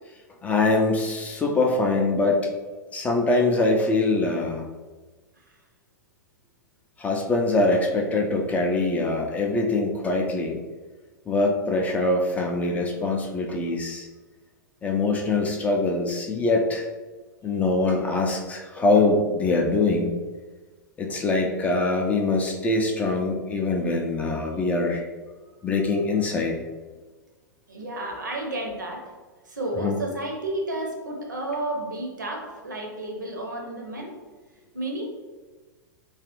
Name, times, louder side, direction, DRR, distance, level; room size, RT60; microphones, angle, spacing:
voice 1, 0.4-2.5 2.9-4.7 7.0-10.6 11.3-14.1 14.8-16.9 17.4-20.2 21.0-25.0 25.6-26.5 29.8-30.0, left 2 dB, 15° left, 0 dB, 0.3 m, -23 dB
voice 2, 27.7-29.0 29.4-34.1 34.7-35.1, right 1 dB, 70° right, 1 dB, 0.7 m, -31 dB
3.1 x 2.4 x 2.9 m, 1.3 s
figure-of-eight pair, 95°, 10 cm